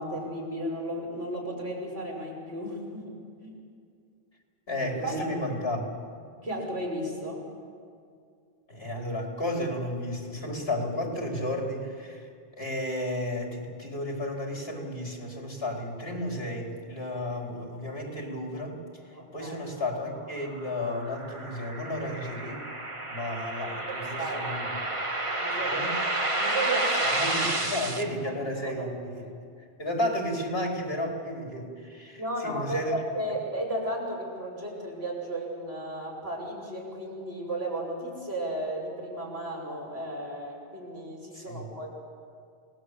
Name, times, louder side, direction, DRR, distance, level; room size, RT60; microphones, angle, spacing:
voice 1, 0.0-3.1 3.4-3.6 5.0-5.2 6.4-7.4 19.1-19.5 24.2-24.5 25.4-27.2 28.2-28.3 28.6-28.9 32.2-41.9, right 1 dB, 85° right, -2 dB, 6.6 m, -34 dB
voice 2, 4.7-5.9 8.7-18.8 19.0-22.6 23.1-24.7 25.7-25.9 27.1-29.2 29.8-32.9 41.3-41.7, left 1 dB, 75° left, 0 dB, 4.7 m, -33 dB
sound 1, 20.2-28.0, right 2 dB, 30° right, 1.7 m, -30 dB
28.5 x 19.5 x 8.3 m, 2.3 s
omnidirectional pair, 1.0 m